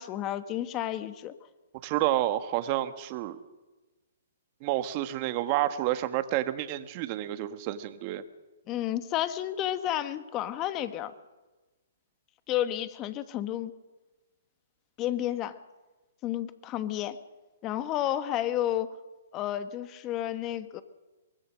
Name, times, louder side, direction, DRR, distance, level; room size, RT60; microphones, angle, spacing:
voice 1, 0.0-1.3 8.7-11.1 12.5-13.7 15.0-15.5 16.2-17.2 17.6-19.0 19.3-20.8, left 12 dB, 25° left, 12 dB, 1.4 m, -31 dB
voice 2, 1.8-3.4 4.6-8.2, right 14 dB, 35° right, 10 dB, 1.6 m, -29 dB
24.0 x 20.0 x 6.4 m, 1.2 s
hypercardioid pair, 140°, 0 cm